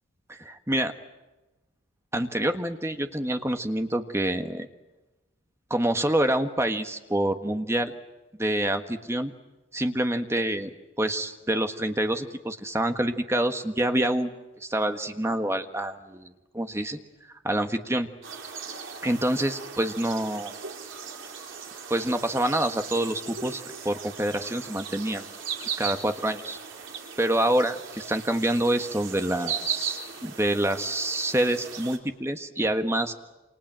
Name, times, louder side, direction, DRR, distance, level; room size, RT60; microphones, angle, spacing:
voice 1, 0.3-0.9 2.1-4.7 5.7-7.9 8.4-9.3 9.7-10.7 11.0-14.3 14.6-17.0 17.4-18.1 19.0-20.5 21.9-25.3 25.8-26.6 27.2-33.2, right 1 dB, 15° right, 7 dB, 1.5 m, -27 dB
sound 1, 18.2-32.0, right 7 dB, 70° right, 4.0 m, -37 dB
29.0 x 26.5 x 7.6 m, 1.1 s
head